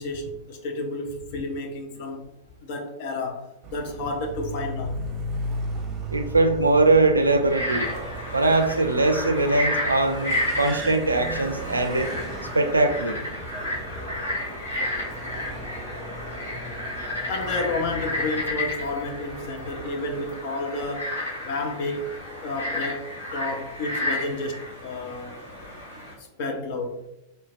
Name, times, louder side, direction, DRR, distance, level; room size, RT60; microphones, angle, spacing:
voice 1, 0.0-2.3 2.6-5.0 17.3-21.1 21.4-22.1 22.4-25.4 26.2-27.0, left 2 dB, 50° left, 0.5 m, -31 dB
Car, 3.6-20.4, right 1 dB, 25° right, 0.6 m, -37 dB
voice 2, 6.1-7.9 8.3-12.1 12.5-13.3, right 2 dB, 80° right, 0.3 m, -21 dB
Frog, 7.4-26.1, left 1 dB, 75° left, 1.3 m, -32 dB
3.8 x 2.2 x 2.4 m
figure-of-eight pair, 90°, 0 cm